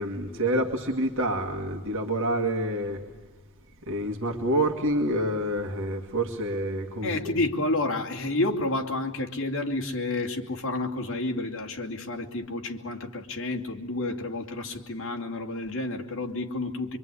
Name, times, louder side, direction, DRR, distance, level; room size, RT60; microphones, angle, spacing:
voice 1, 0.0-3.0 3.9-7.3, right 1 dB, 65° right, 3 dB, 2.0 m, -27 dB
voice 2, 7.0-17.0, left 2 dB, 65° left, 2 dB, 2.7 m, -30 dB
25.0 x 24.0 x 9.9 m, 1.2 s
head